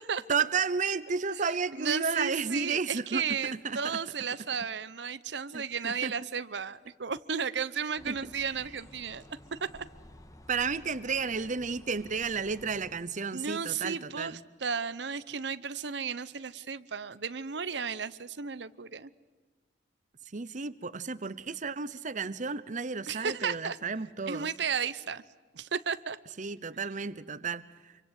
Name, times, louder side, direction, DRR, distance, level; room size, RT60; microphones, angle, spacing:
voice 1, 0.3-3.2 3.6-4.0 5.5-6.1 8.1-8.3 10.5-14.4 20.3-24.5 26.4-27.9, right 5 dB, 45° right, 15 dB, 0.8 m, -32 dB
voice 2, 1.7-9.2 9.5-9.8 13.3-19.1 23.1-23.8 24.3-25.2 25.5-26.2, right 6 dB, 75° right, 15 dB, 0.9 m, -34 dB
sound 1, 8.0-13.0, left 1 dB, 20° left, 1.8 m, -53 dB
26.5 x 24.5 x 8.2 m, 1.4 s
head